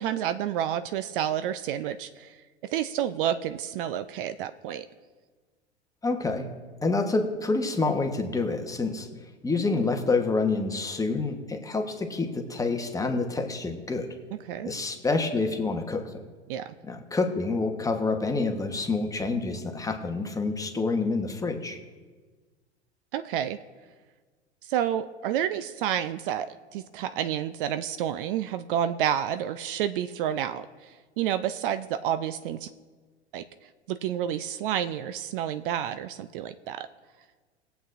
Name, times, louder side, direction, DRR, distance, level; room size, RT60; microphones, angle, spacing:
voice 1, 0.0-4.9 14.5-14.7 16.5-16.7 23.1-23.6 24.6-32.7 33.3-36.9, right 10 dB, 50° right, 11 dB, 0.5 m, -30 dB
voice 2, 6.0-6.5 6.8-14.1 14.6-16.1 16.9-21.8, left 3 dB, 10° left, 5 dB, 1.1 m, -27 dB
20.0 x 8.0 x 2.6 m, 1.4 s
figure-of-eight pair, 90°, 34 cm